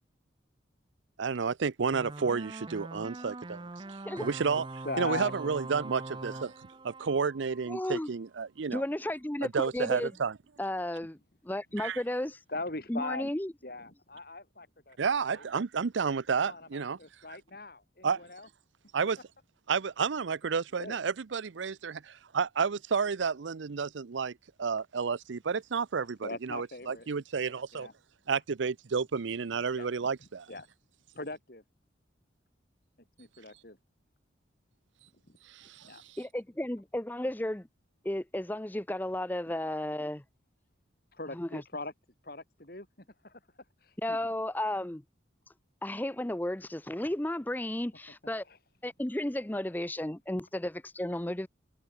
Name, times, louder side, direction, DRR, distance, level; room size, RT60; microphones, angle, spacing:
voice 1, 1.2-3.7 4.2-4.7 5.0-8.8 9.4-10.3 11.8-12.0 15.0-17.0 17.3-17.4 18.0-18.2 18.9-19.2 19.7-27.9 28.3-30.5 35.4-36.2, right 5 dB, 80° right, 0.6 m, -31 dB
sound 1, 1.9-8.0, right 2 dB, 25° right, 0.7 m, -43 dB
voice 2, 4.6-5.5 12.5-13.3 13.6-15.0 15.3-15.4 16.3-18.5 20.7-21.0 26.2-27.1 27.7-27.9 29.7-30.1 30.5-30.7 31.1-31.6 33.2-33.8 35.3-35.4 35.8-36.0 41.1-41.9 42.2-42.9 43.2-43.4 43.8-44.2 48.5-48.6, left 2 dB, 50° left, 3.5 m, -40 dB
voice 3, 7.7-8.1 8.7-10.1 10.6-11.2 11.4-12.4 12.9-13.5 36.2-37.7 38.0-40.2 41.3-41.6 44.0-45.0 45.8-48.4 48.8-51.5, left 1 dB, 10° left, 0.6 m, -33 dB
head